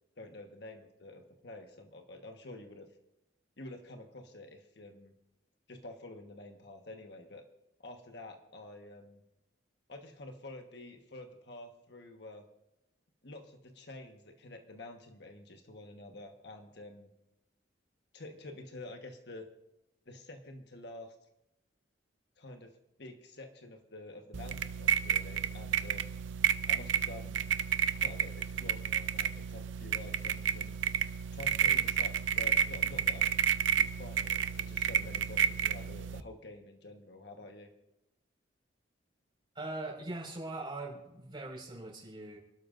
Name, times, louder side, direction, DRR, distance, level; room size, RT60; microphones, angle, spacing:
voice 1, 0.2-2.9 3.6-5.1 5.7-7.4 7.8-9.2 9.9-12.4 13.2-17.1 18.1-19.5 20.0-21.2 22.4-22.7 23.0-26.2 26.7-27.4 28.0-30.8 31.3-33.3 33.8-37.7, left 2 dB, 60° left, 4 dB, 1.3 m, -48 dB
sound 1, 24.3-36.2, right 8 dB, 80° right, 0.6 m, -31 dB
voice 2, 39.5-42.4, right 2 dB, 25° right, -2 dB, 5.1 m, -41 dB
29.0 x 12.5 x 2.6 m, 0.90 s
head